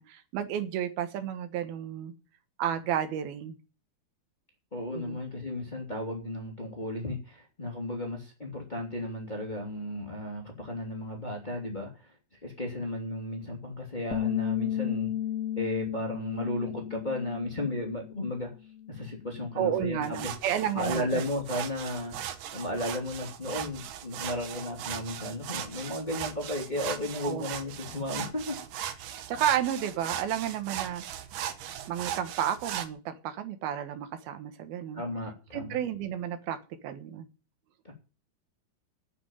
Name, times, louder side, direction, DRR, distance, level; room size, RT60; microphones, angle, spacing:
voice 1, 0.0-2.1 2.6-3.6 5.0-5.2 19.6-21.2 27.2-27.5 29.3-31.0 31.9-35.0 35.5-36.6 36.8-37.3, right 9 dB, 85° right, 9 dB, 3.2 m, -31 dB
voice 2, 4.7-12.1 12.4-15.1 15.6-18.5 18.9-20.3 20.7-22.2 22.5-28.9 34.9-35.8 37.8-37.9, left 1 dB, 15° left, 0 dB, 2.5 m, -34 dB
Bass guitar, 14.1-18.4 18.7-20.4, left 11 dB, 90° left, 1.5 m, -34 dB
sound 1, 20.0-32.9, right 10 dB, 70° right, 2.7 m, -38 dB
9.5 x 7.7 x 9.1 m, 0.34 s
omnidirectional pair, 4.3 m